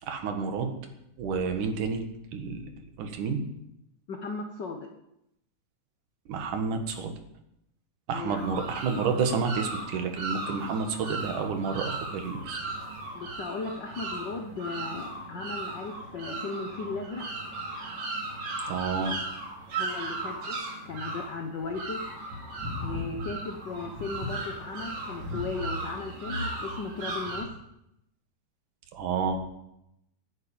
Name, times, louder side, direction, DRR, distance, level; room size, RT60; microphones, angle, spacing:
voice 1, 0.0-0.7 1.2-2.0 2.3-3.4 6.3-7.1 8.1-12.6 18.7-19.2 28.9-29.4, right 5 dB, 75° right, 5 dB, 3.0 m, -30 dB
voice 2, 4.1-4.9 8.1-8.4 13.1-17.2 19.7-20.6 20.9-22.0 22.8-27.5, left 4 dB, 70° left, 4 dB, 1.0 m, -36 dB
sound 1, 8.3-27.4, right 2 dB, 60° right, 4.2 m, -36 dB
11.5 x 9.6 x 8.8 m, 0.83 s
omnidirectional pair, 3.7 m